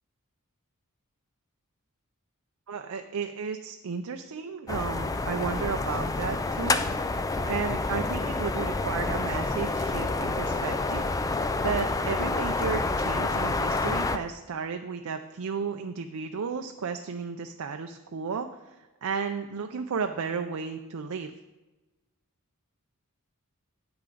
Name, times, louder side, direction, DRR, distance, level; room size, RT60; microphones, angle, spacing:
voice 1, 2.7-6.8 7.5-11.0 11.6-21.3, right 5 dB, 65° right, 6 dB, 0.5 m, -33 dB
sound 1, 4.7-14.2, left 3 dB, 15° left, 0.3 m, -28 dB
8.9 x 8.7 x 3.9 m, 1.1 s
head